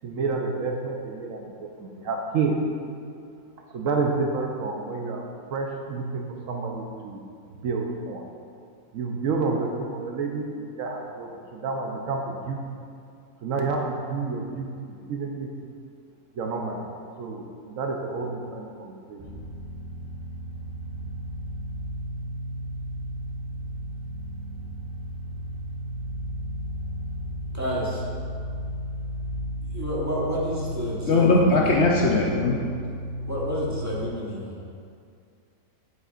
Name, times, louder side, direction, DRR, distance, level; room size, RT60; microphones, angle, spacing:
voice 1, 0.0-2.6 3.7-5.2 5.5-7.2 7.6-8.2 8.9-12.6 13.4-15.5 16.3-16.9 17.2-19.2, right 4 dB, 65° right, 1 dB, 1.0 m, -29 dB
sound 1, 19.2-34.1, equal, 45° right, 0.6 m, -34 dB
voice 2, 27.5-28.0 29.7-31.9 33.3-34.5, equal, 10° right, -6 dB, 1.1 m, -30 dB
voice 3, 31.1-32.6, left 2 dB, 60° left, -2 dB, 0.8 m, -20 dB
8.0 x 8.0 x 2.5 m, 2.3 s
omnidirectional pair, 1.6 m